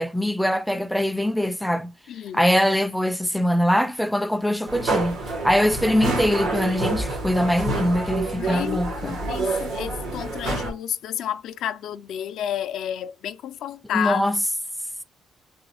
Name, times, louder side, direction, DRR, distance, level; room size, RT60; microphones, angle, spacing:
voice 1, 0.0-1.9 2.3-5.2 5.4-9.2 13.9-14.4, equal, ahead, 0.3 m, -22 dB
voice 2, 2.1-2.4 8.4-14.2, left 10 dB, 80° left, 0.3 m, -30 dB
sound 1, 4.7-10.7, right 2 dB, 90° right, 1.7 m, -27 dB
4.0 x 3.0 x 2.9 m
cardioid pair, 90°, 0 cm